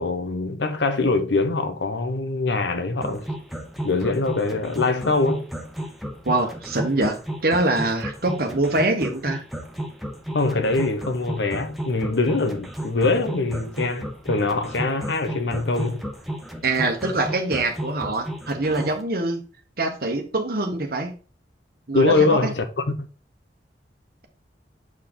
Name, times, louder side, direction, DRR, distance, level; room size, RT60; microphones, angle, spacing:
voice 1, 0.0-3.3 3.8-5.5 10.3-16.0 21.9-22.6 23.0-23.1, left 3 dB, 80° left, 1.0 m, -23 dB
sound 1, 3.0-19.0, right 1 dB, ahead, 0.9 m, -33 dB
voice 2, 6.2-7.2 7.4-9.4 16.6-19.4 19.8-21.1 21.9-22.5, right 2 dB, 55° right, 1.4 m, -24 dB
7.5 x 4.4 x 3.8 m
head